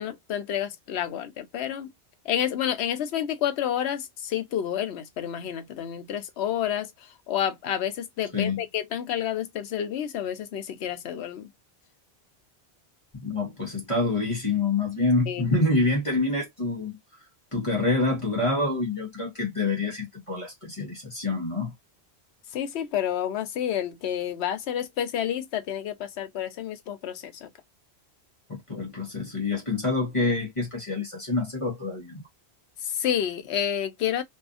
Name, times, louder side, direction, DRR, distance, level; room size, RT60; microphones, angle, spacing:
voice 1, 0.0-1.9 2.3-6.9 7.3-11.5 15.3-15.5 22.5-27.5 32.8-34.2, left 10 dB, 75° left, 0.9 m, -29 dB
voice 2, 13.1-17.0 17.5-21.7 28.5-32.2, left 3 dB, 30° left, 1.1 m, -27 dB
2.7 x 2.5 x 2.4 m
omnidirectional pair, 1.1 m